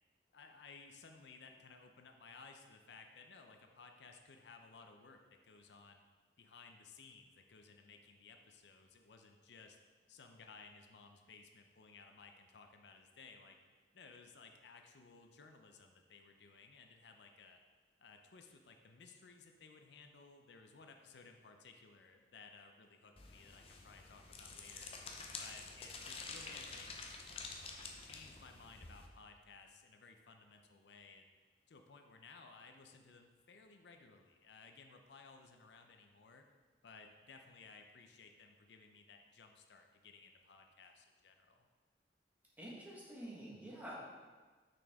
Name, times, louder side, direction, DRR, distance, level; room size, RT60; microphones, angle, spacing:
voice 1, 0.3-6.0 6.4-9.8 10.1-13.6 13.9-17.6 18.0-24.9 25.4-27.0 27.8-31.3 31.7-36.5 36.8-41.7, left 4 dB, 80° left, 5 dB, 0.6 m, -58 dB
sound 1, 23.2-29.1, left 4 dB, 35° left, 0.6 m, -49 dB
voice 2, 42.6-43.9, right 1 dB, 10° right, -6 dB, 1.3 m, -48 dB
6.1 x 6.0 x 3.6 m, 1.4 s
head